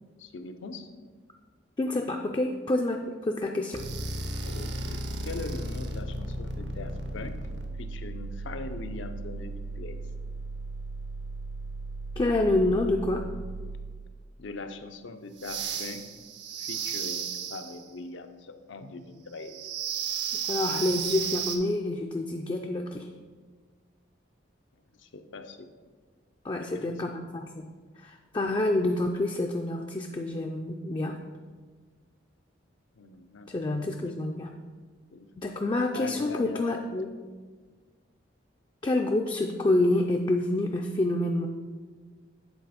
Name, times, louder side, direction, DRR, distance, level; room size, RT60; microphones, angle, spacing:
voice 1, 0.2-0.9 4.4-7.4 7.8-10.0 14.4-16.0 16.6-19.6 25.0-25.7 26.6-26.9 33.0-33.5 33.9-34.2 35.1-35.3 35.9-36.9, left 3 dB, 80° left, 8 dB, 0.6 m, -41 dB
voice 2, 1.8-3.8 12.2-13.3 20.3-23.1 26.4-27.7 28.0-31.2 33.5-34.5 35.4-37.1 38.8-41.5, left 2 dB, 25° left, 2 dB, 0.3 m, -28 dB
sound 1, 3.7-14.2 15.4-17.8 19.4-21.6, right 4 dB, 65° right, 0.7 m, -35 dB
8.2 x 4.1 x 5.0 m, 1.5 s
head